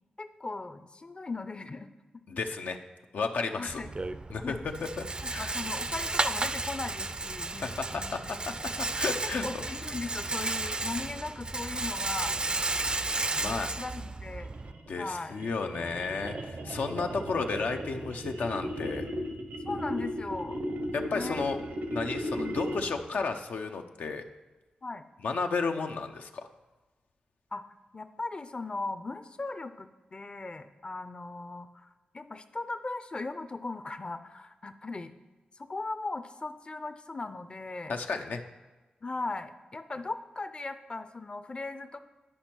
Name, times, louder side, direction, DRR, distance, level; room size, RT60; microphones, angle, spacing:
voice 1, 0.2-2.2 3.6-3.9 4.4-4.6 5.2-8.3 9.4-12.4 13.3-14.5 15.0-15.3 16.6-16.8 19.7-20.6 21.1-21.5 22.4-22.6 24.8-25.0 27.5-27.6 27.9-35.1 35.6-37.9 39.0-42.0, left 3 dB, 35° left, 10 dB, 0.5 m, -38 dB
voice 2, 2.3-2.8 3.1-3.8 4.3-5.1 5.3-5.5 7.6-9.6 13.4-13.8 14.9-19.1 20.9-21.6 21.9-24.2 25.2-26.5 37.9-38.4, left 4 dB, 85° left, 5 dB, 0.6 m, -33 dB
Rattle, 3.7-14.7, right 2 dB, 30° right, 0.4 m, -33 dB
sound 1, 14.4-23.1, equal, 80° right, 0.8 m, -36 dB
10.0 x 5.2 x 4.4 m, 1.2 s
cardioid pair, 65°, 3 cm